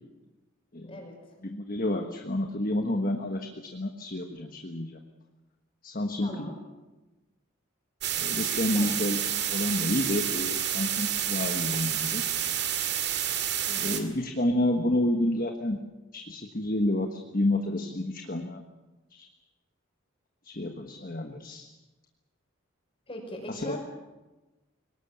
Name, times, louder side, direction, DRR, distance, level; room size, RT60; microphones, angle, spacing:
voice 1, 0.8-1.2 6.2-6.5 8.7-9.1 13.7-14.1 23.1-23.8, equal, 25° left, 2 dB, 5.8 m, -40 dB
voice 2, 1.4-5.0 5.8-6.5 8.2-9.2 9.5-12.2 13.8-15.8 16.1-18.6 19.1-19.3 20.4-21.7 23.5-23.8, left 1 dB, 40° left, 5 dB, 1.4 m, -29 dB
sound 1, 8.0-14.0, right 10 dB, 50° right, 2.4 m, -29 dB
23.0 x 19.0 x 8.7 m, 1.1 s
head